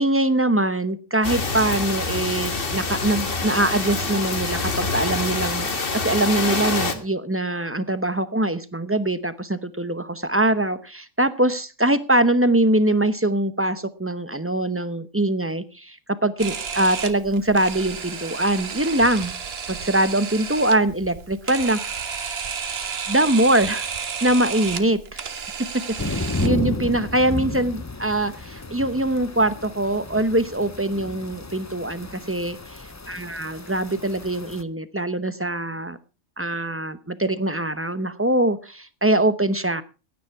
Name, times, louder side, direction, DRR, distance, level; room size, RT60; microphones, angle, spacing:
voice 1, 0.0-19.3 19.7-22.1 22.8-25.2 26.0-32.6 33.1-36.0 36.4-39.8, right 1 dB, 15° right, 13 dB, 0.7 m, -23 dB
sound 1, 1.2-6.9, left 3 dB, 50° left, 1.7 m, -26 dB
Camera, 16.4-26.5, right 6 dB, 55° right, 1.3 m, -32 dB
sound 2, 26.0-34.6, left 2 dB, 20° left, 0.5 m, -32 dB
16.0 x 9.6 x 4.6 m, 0.33 s
omnidirectional pair, 1.3 m